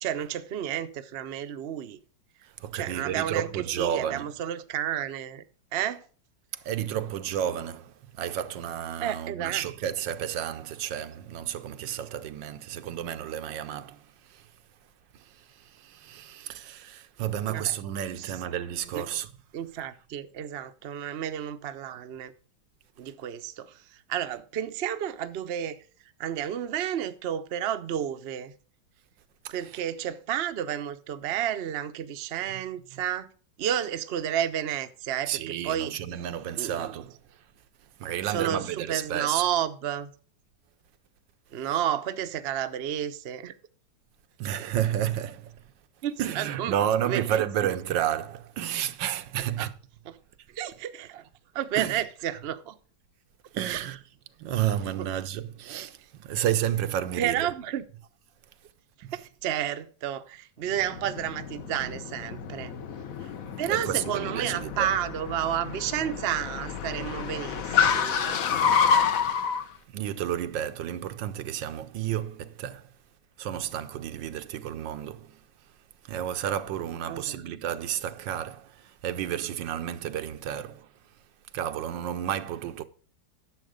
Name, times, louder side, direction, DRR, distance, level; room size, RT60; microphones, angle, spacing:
voice 1, 0.0-2.0 2.7-5.4 5.7-6.1 9.0-9.7 17.5-17.7 18.2-18.3 18.9-19.0 19.5-22.3 23.0-25.8 26.2-28.5 29.5-33.3 33.6-36.0 36.5-36.9 38.2-40.1 41.5-43.5 46.0-46.8 47.0-47.4 49.4-49.7 50.1-50.2 50.5-51.2 51.5-52.8 53.7-53.8 55.0-55.1 57.2-57.9 59.4-62.7 63.2-63.3 63.6-68.4 77.1-77.4, right 10 dB, 55° right, 0.7 m, -31 dB
voice 2, 2.6-4.3 6.5-14.5 15.1-19.3 29.4-29.5 35.3-37.2 38.0-39.4 44.4-45.6 46.2-49.7 51.8-52.0 53.5-54.0 54.4-57.5 59.0-59.1 61.8-61.9 63.6-64.9 69.9-72.9 73.4-75.4 76.0-80.9 81.5-82.8, right 10 dB, 85° right, 1.4 m, -31 dB
Car, 60.7-69.6, left 7 dB, 55° left, 1.2 m, -28 dB
10.5 x 7.3 x 5.1 m
omnidirectional pair, 2.0 m